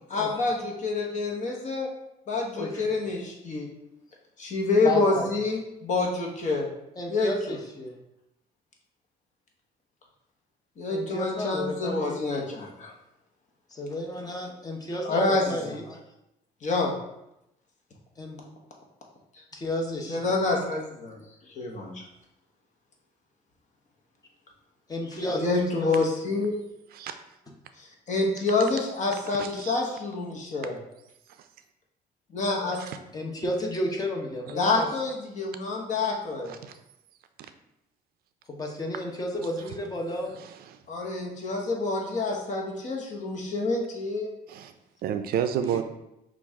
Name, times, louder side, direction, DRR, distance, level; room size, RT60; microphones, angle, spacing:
voice 1, 0.1-1.9 2.3-3.7 4.4-6.7 7.1-7.6 10.8-12.9 15.0-15.8 16.6-16.9 20.1-21.2 21.6-22.0 25.4-26.5 27.8-30.7 32.3-32.8 34.6-36.5 40.9-44.3, left 3 dB, 45° left, 0 dB, 1.1 m, -27 dB
voice 2, 2.6-3.0 4.8-5.3 7.0-8.0 10.9-12.2 13.7-16.0 18.2-18.4 19.5-20.3 24.9-26.4 33.1-34.9 38.5-40.4 45.7-45.8, left 1 dB, 20° left, 1 dB, 0.9 m, -32 dB
voice 3, 29.4-29.8 31.4-31.5 32.7-33.0 36.5-36.8 37.4-37.5 40.3-40.8 44.5-44.7 45.0-45.8, right 9 dB, 65° right, 9 dB, 0.4 m, -31 dB
6.0 x 2.5 x 3.5 m, 0.86 s
cardioid pair, 110°, 17 cm